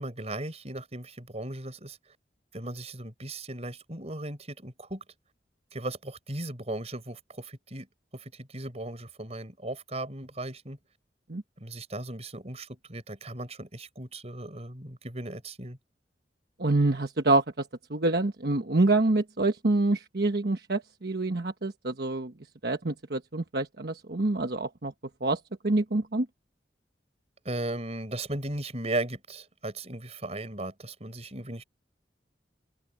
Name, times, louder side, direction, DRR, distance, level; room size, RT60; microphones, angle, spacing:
voice 1, 0.0-2.0 2.5-5.0 5.7-7.9 8.1-10.8 11.6-15.8 27.4-31.6, right 1 dB, 35° right, 5.6 m, -37 dB
voice 2, 16.6-17.4 17.9-22.3 22.6-24.9 25.2-25.4 25.6-26.3, right 2 dB, 60° right, 1.2 m, -26 dB
head